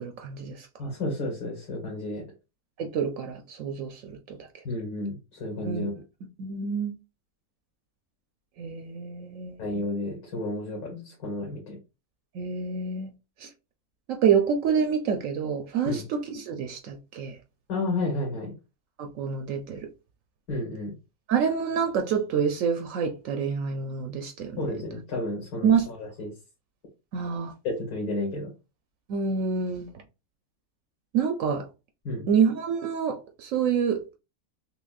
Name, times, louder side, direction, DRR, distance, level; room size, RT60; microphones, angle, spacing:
voice 1, 0.0-0.7 2.8-4.4 5.6-5.9 6.4-6.9 8.6-9.6 12.3-13.1 13.4-13.5 14.1-17.4 19.0-19.8 21.3-24.7 25.6-25.9 27.1-27.5 29.1-29.9 31.1-31.7 32.3-34.2, right 6 dB, 70° right, 0.9 m, -27 dB
voice 2, 0.8-2.2 4.6-6.0 9.6-11.8 15.8-16.0 17.7-18.5 20.5-20.9 24.6-26.3 27.6-28.5 32.0-32.2, left 2 dB, 80° left, 1.7 m, -31 dB
5.7 x 2.2 x 2.3 m
omnidirectional pair, 1.6 m